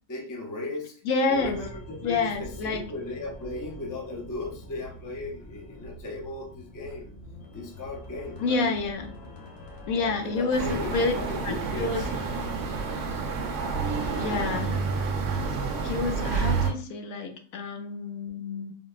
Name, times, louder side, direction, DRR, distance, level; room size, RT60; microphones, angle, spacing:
voice 1, 0.1-0.9 1.3-7.1 7.5-8.7 9.9-12.1, left 2 dB, 30° left, -1 dB, 0.3 m, -37 dB
voice 2, 1.0-1.6 2.0-2.9 8.4-9.1 9.9-11.1 11.4-12.0 14.1-14.8 15.8-18.7, left 4 dB, 85° left, 5 dB, 1.0 m, -28 dB
sound 1, 1.3-12.9, left 1 dB, 55° left, 0.9 m, -44 dB
sound 2, 10.5-16.7, right 4 dB, 60° right, 0.8 m, -29 dB
3.9 x 2.0 x 2.4 m, 0.43 s
omnidirectional pair, 1.4 m